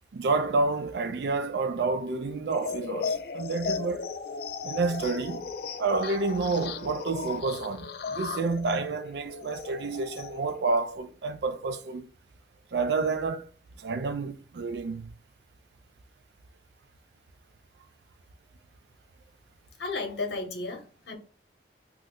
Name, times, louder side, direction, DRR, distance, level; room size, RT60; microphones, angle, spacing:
voice 1, 0.1-4.0 4.6-5.5 5.8-12.1 12.7-13.5 13.8-15.1, right 3 dB, 75° right, 0.4 m, -29 dB
sound 1, 2.5-10.5, left 5 dB, 60° left, 0.3 m, -36 dB
voice 2, 19.8-21.2, left 3 dB, 80° left, 0.8 m, -33 dB
3.0 x 2.1 x 3.6 m
head